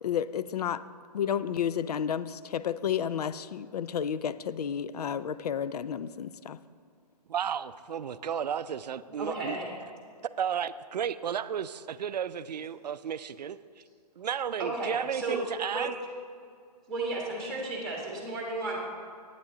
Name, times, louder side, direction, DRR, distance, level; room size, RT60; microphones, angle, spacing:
voice 1, 0.0-0.8 1.1-6.6, left 8 dB, 70° left, 16 dB, 0.4 m, -31 dB
voice 2, 7.3-9.6 10.4-13.6 14.2-15.9, right 8 dB, 75° right, 14 dB, 0.4 m, -33 dB
voice 3, 9.2-9.7 14.6-15.4 15.7-15.9 16.9-18.8, right 2 dB, ahead, -2 dB, 1.4 m, -33 dB
11.0 x 8.9 x 3.8 m, 2.2 s
hypercardioid pair, 150°, 21 cm